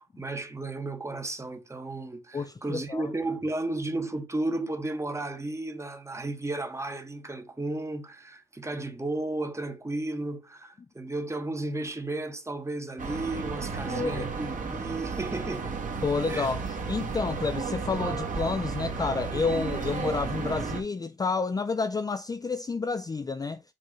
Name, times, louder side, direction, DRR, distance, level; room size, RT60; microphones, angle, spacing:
voice 1, 0.0-15.8 16.3-16.5, right 2 dB, 15° right, 1.3 m, -33 dB
voice 2, 2.3-3.1 13.8-14.3 16.0-23.6, left 4 dB, 20° left, 0.4 m, -30 dB
sound 1, 13.0-20.8, right 5 dB, 40° right, 1.6 m, -33 dB
7.6 x 2.8 x 4.8 m
cardioid pair, 90°, 20 cm